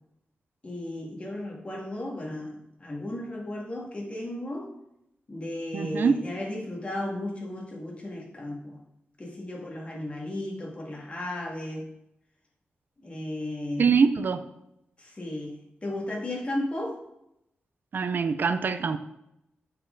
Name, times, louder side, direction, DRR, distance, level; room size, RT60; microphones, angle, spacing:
voice 1, 0.6-4.7 5.3-8.8 9.2-11.9 13.0-14.0 15.0-17.0, left 1 dB, 30° left, -1 dB, 2.1 m, -35 dB
voice 2, 5.7-6.2 13.8-14.4 17.9-19.0, right 5 dB, 55° right, 11 dB, 0.5 m, -24 dB
8.7 x 4.4 x 3.9 m, 0.82 s
cardioid pair, 85°, 4 cm